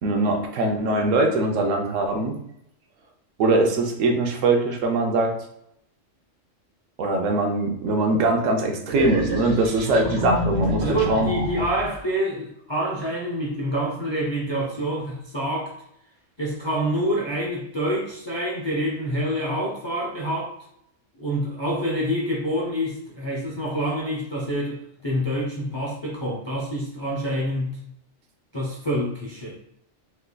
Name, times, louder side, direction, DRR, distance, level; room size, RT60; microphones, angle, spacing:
voice 1, 0.0-2.3 3.4-5.3 7.0-11.3, right 2 dB, 80° right, 3 dB, 1.0 m, -22 dB
sound 1, 8.9-12.0, equal, 45° right, 0.6 m, -27 dB
voice 2, 10.8-15.7 16.4-20.5 21.2-27.8 28.5-29.5, equal, 45° left, -4 dB, 0.3 m, -27 dB
3.5 x 3.1 x 2.2 m, 0.75 s
omnidirectional pair, 1.3 m